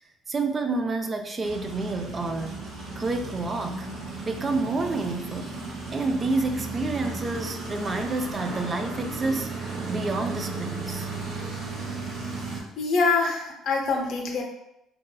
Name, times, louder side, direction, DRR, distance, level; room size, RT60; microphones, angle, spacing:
voice 1, 0.3-2.7 2.9-3.9 4.3-5.6 5.9-9.5 9.9-11.1, right 3 dB, 25° right, 5 dB, 0.3 m, -29 dB
sound 1, 1.4-12.6, right 3 dB, 65° right, 0.8 m, -35 dB
voice 2, 12.4-14.4, left 4 dB, 50° left, 0 dB, 0.6 m, -25 dB
3.9 x 2.7 x 2.2 m, 0.85 s
cardioid pair, 135°, 0 cm